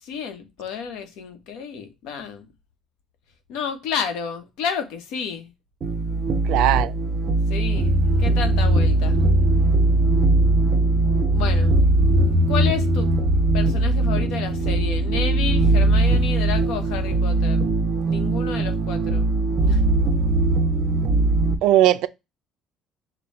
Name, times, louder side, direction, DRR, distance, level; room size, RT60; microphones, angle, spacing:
voice 1, 0.0-2.5 3.5-5.5 7.5-9.2 11.3-11.8 12.5-13.1 13.5-17.7 18.0-19.3 19.7-19.8, left 7 dB, 85° left, 1.0 m, -31 dB
sound 1, 5.8-21.6, right 2 dB, 40° right, 0.7 m, -20 dB
voice 2, 6.3-6.9 21.6-22.1, right 13 dB, 80° right, 0.4 m, -18 dB
5.2 x 2.2 x 4.1 m
cardioid pair, 140°, 0 cm